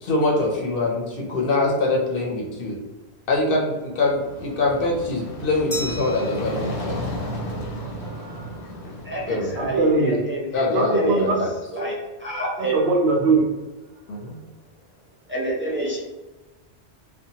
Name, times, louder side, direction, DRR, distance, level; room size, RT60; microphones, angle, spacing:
voice 1, 0.0-2.8 3.3-7.0 9.3-9.5 10.5-11.5 14.1-14.4, left 2 dB, 65° left, -1 dB, 0.7 m, -24 dB
sound 1, 3.9-10.0, equal, 90° left, 0.9 m, -34 dB
Glass, 5.7-8.2, equal, 30° left, 0.7 m, -37 dB
voice 2, 8.1-8.5 9.6-10.2 10.7-11.4 11.8-11.9 12.6-13.4, right 3 dB, 75° right, 1 dB, 0.8 m, -21 dB
voice 3, 9.0-11.3 11.7-11.9 12.2-12.8 15.3-16.0, right 1 dB, 20° right, -6 dB, 0.3 m, -27 dB
2.6 x 2.1 x 2.7 m, 1.1 s
omnidirectional pair, 1.1 m